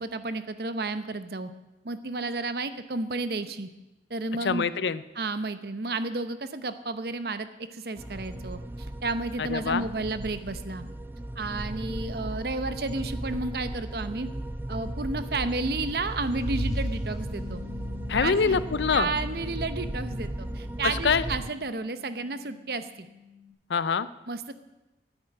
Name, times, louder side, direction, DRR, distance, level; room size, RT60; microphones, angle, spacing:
voice 1, 0.0-1.5 1.8-3.7 4.1-4.7 5.1-10.8 11.4-14.3 14.7-17.6 18.2-18.6 18.9-23.1 24.3-24.5, right 3 dB, 60° right, 11 dB, 0.8 m, -32 dB
voice 2, 4.4-5.0 9.4-9.8 18.1-19.1 20.8-21.2 23.7-24.1, left 5 dB, 80° left, 16 dB, 0.5 m, -25 dB
sound 1, 8.0-21.5, right 1 dB, 10° right, 0.3 m, -36 dB
sound 2, 15.5-17.9, equal, 20° left, 2.7 m, -34 dB
Bass guitar, 17.3-23.5, left 7 dB, 40° right, 2.3 m, -48 dB
9.9 x 9.0 x 8.4 m, 1.0 s
head